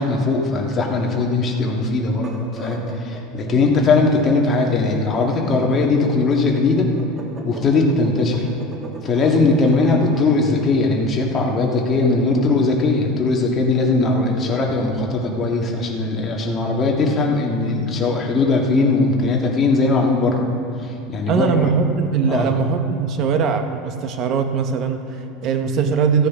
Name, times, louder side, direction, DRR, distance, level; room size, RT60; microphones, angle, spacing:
voice 1, 0.0-6.9 7.4-8.5 9.0-20.5 21.1-21.7 22.3-22.5, left 3 dB, 25° left, 0 dB, 1.6 m, -19 dB
sound 1, 2.1-10.3, right 2 dB, 25° right, 1.3 m, -38 dB
Bowed string instrument, 14.7-15.6, left 2 dB, 5° left, 0.9 m, -36 dB
voice 2, 21.3-26.3, right 6 dB, 45° right, 7 dB, 0.7 m, -21 dB
16.0 x 9.5 x 3.6 m, 2.7 s
supercardioid pair, 140°, 0 cm